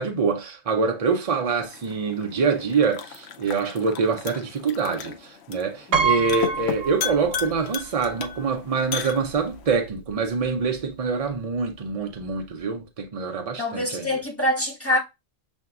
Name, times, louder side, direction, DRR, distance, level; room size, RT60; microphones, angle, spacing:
voice 1, 0.0-14.1, right 5 dB, 55° right, 0.4 m, -25 dB
sound 1, 1.7-9.7, left 8 dB, 65° left, 0.8 m, -36 dB
Piano, 5.9-7.7 8.1-8.2 9.3-9.4 9.7-10.0, right 5 dB, 85° right, 1.0 m, -26 dB
voice 2, 13.6-15.0, left 1 dB, 10° left, 1.3 m, -25 dB
6.7 x 2.6 x 2.3 m
omnidirectional pair, 1.3 m